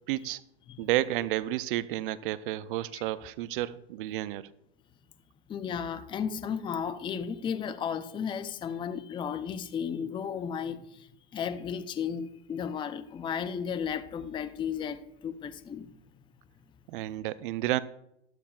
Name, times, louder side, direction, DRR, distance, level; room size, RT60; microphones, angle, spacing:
voice 1, 0.1-0.4 0.8-4.5 16.9-17.8, right 15 dB, 55° right, 0.5 m, -31 dB
voice 2, 5.5-11.1 11.3-15.9, left 7 dB, 15° left, 0.5 m, -34 dB
13.0 x 12.0 x 2.4 m
hypercardioid pair, 100°, 31 cm